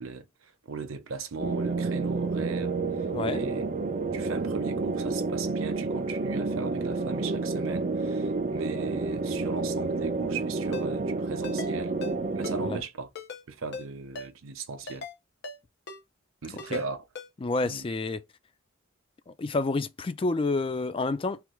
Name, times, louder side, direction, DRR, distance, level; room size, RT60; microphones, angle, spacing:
voice 1, 0.0-2.8 3.3-3.6 4.1-12.0 12.3-13.1 13.5-15.1 16.4-17.0 17.6-17.9, right 4 dB, 85° right, 0.6 m, -38 dB
sound 1, 1.4-12.8, right 3 dB, 40° right, 0.4 m, -30 dB
voice 2, 3.1-3.4 12.6-12.8 16.7-16.8 17.4-18.2 19.3-21.4, left 3 dB, 25° left, 0.3 m, -29 dB
Ringtone, 10.7-10.9 11.4-11.7 12.0-12.1 12.4-12.6 13.2-13.4 13.7-13.9 14.2-14.3 14.9-15.1 15.4-15.6 15.9-16.0 16.6-16.8 17.2-17.3, left 4 dB, 55° left, 0.7 m, -38 dB
3.4 x 2.3 x 3.0 m
head